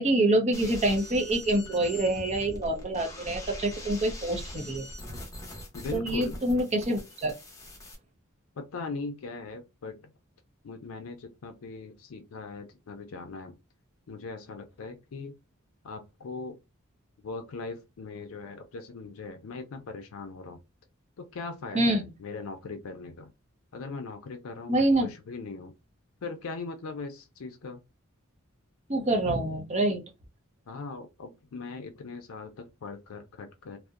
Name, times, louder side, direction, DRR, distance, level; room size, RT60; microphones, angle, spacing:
voice 1, 0.0-4.9 5.9-7.3 21.7-22.0 24.7-25.1 28.9-30.0, right 1 dB, 35° right, 0.6 m, -26 dB
sound 1, 0.5-8.0, left 1 dB, 15° left, 0.7 m, -42 dB
voice 2, 5.7-6.4 8.6-10.1 10.6-13.6 14.1-15.3 15.8-16.6 17.2-20.6 21.2-23.3 23.7-25.7 26.2-27.8 30.7-33.8, left 4 dB, 75° left, 0.4 m, -40 dB
2.6 x 2.0 x 2.3 m
head